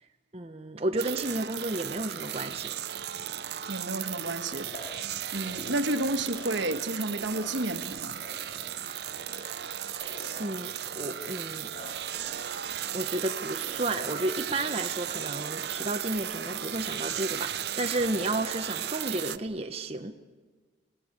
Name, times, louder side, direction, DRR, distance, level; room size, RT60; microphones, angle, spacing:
voice 1, 0.3-2.7 9.7-10.0 10.4-11.7 12.9-20.2, right 2 dB, 35° right, 0.9 m, -32 dB
sound 1, 1.0-19.4, right 10 dB, 60° right, 0.7 m, -35 dB
sound 2, 3.1-3.5 4.4-5.0 5.3-5.9 6.2-6.9 7.2-7.8 8.1-9.6 9.9-10.6 10.9-12.5 12.9-14.9 15.2-15.9 16.2-16.7 17.1-17.7 18.0-18.6 19.0-19.3, left 1 dB, 45° left, 6.2 m, -48 dB
voice 2, 3.7-4.7 5.3-8.2, right 1 dB, 80° right, 1.5 m, -31 dB
26.5 x 17.5 x 8.7 m
head